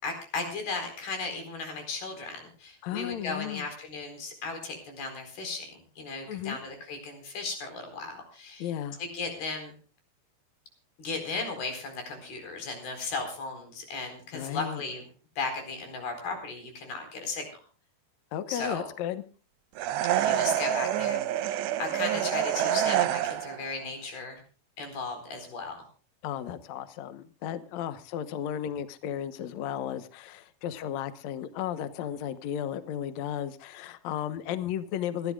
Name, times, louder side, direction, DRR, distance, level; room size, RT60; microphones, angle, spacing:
voice 1, 0.0-8.7 9.0-9.8 11.0-15.1 15.4-17.5 18.5-18.9 20.1-24.4 24.8-25.8, left 3 dB, 60° left, 5 dB, 6.2 m, -36 dB
voice 2, 2.8-3.6 6.3-6.6 8.6-9.0 14.3-14.8 18.3-19.2 26.2-35.3, left 10 dB, 85° left, 11 dB, 1.5 m, -34 dB
sound 1, 19.8-23.6, right 11 dB, 85° right, 3.0 m, -27 dB
28.5 x 12.0 x 2.4 m, 0.38 s
omnidirectional pair, 4.9 m